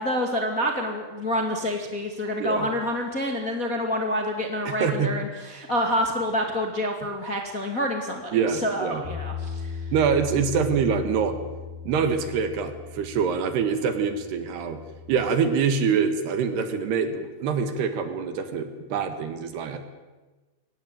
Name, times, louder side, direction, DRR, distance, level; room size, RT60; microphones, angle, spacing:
voice 1, 0.0-9.8, equal, 30° left, 3 dB, 1.7 m, -27 dB
voice 2, 2.4-2.7 4.7-5.1 8.3-9.0 9.9-11.4 11.8-14.8 15.1-19.8, right 6 dB, 65° right, 9 dB, 3.5 m, -25 dB
Bass guitar, 9.0-15.3, left 6 dB, 45° left, 5.8 m, -38 dB
23.5 x 18.5 x 9.3 m, 1.2 s
omnidirectional pair, 5.4 m